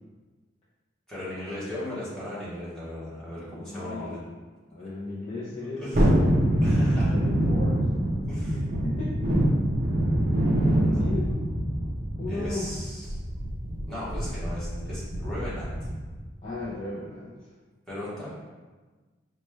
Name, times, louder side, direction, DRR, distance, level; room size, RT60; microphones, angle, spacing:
voice 1, 1.1-4.2 5.8-6.0 6.6-7.1 8.2-8.5 10.8-11.0 12.3-13.2 13.9-15.9 17.9-18.3, left 1 dB, 5° left, -11 dB, 1.2 m, -37 dB
voice 2, 3.4-4.3 4.7-5.9 7.1-7.8 8.5-9.2 11.0-11.4 12.2-12.7 16.4-17.4, left 2 dB, 30° left, -10 dB, 0.5 m, -35 dB
Thunderstorm, 5.9-16.2 16.5-16.6, right 1 dB, 45° right, 0.5 m, -25 dB
4.1 x 2.2 x 3.1 m, 1.3 s
head